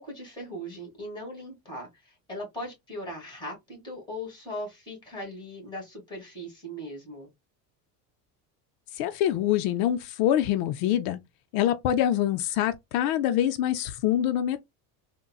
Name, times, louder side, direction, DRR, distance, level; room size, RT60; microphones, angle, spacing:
voice 1, 0.0-7.3, equal, 10° left, 1.9 m, -39 dB
voice 2, 9.0-11.2 11.5-14.6, left 11 dB, 85° left, 0.6 m, -25 dB
3.8 x 2.2 x 2.3 m
cardioid pair, 165°, 42 cm